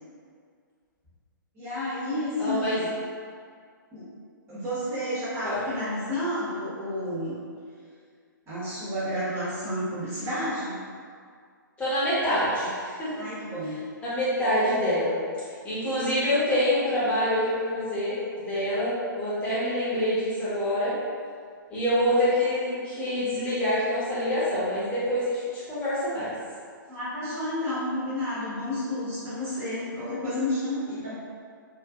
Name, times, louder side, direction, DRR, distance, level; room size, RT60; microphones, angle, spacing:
voice 1, 1.5-2.9 3.9-4.1 4.5-7.4 8.5-10.8 13.2-13.8 26.9-31.1, left 1 dB, 20° right, -10 dB, 1.0 m, -31 dB
voice 2, 2.4-2.8 5.4-5.6 11.8-13.3 14.0-15.1 15.6-21.0 21.7-26.3 31.0-31.1, left 1 dB, 10° left, -11 dB, 1.0 m, -26 dB
2.7 x 2.5 x 2.3 m, 2.1 s
figure-of-eight pair, 120°, 11 cm